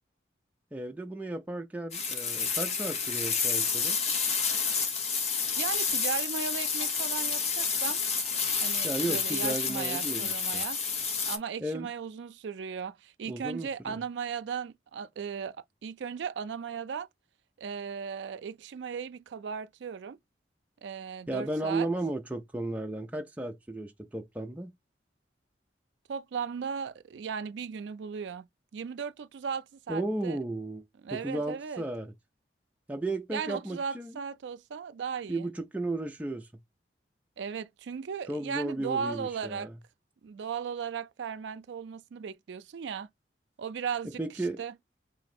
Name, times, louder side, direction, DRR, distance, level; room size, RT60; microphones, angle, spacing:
voice 1, 0.7-4.0 8.8-10.6 11.6-11.9 13.3-14.0 21.3-24.7 29.9-30.8 31.1-32.1 32.9-34.2 35.3-36.5 38.3-39.7 44.2-44.6, right 2 dB, 10° right, 0.4 m, -34 dB
sound 1, 1.9-11.4, left 5 dB, 35° left, 0.7 m, -29 dB
voice 2, 5.6-8.0 8.6-10.8 11.2-15.6 15.8-17.1 17.6-20.2 20.8-21.9 26.1-28.5 28.7-30.4 31.0-31.8 33.3-35.5 37.4-39.7 40.2-43.1 43.6-44.7, right 6 dB, 75° right, 0.4 m, -36 dB
3.0 x 2.6 x 4.1 m
head